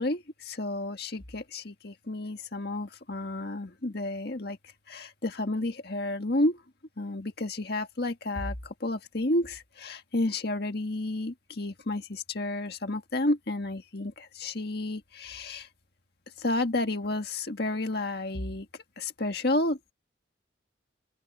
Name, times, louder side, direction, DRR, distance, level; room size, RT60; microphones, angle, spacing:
voice 1, 0.0-4.6 4.9-6.6 7.0-15.7 16.4-18.7 19.0-19.9, left 2 dB, 55° left, 1.8 m, -31 dB
open air
head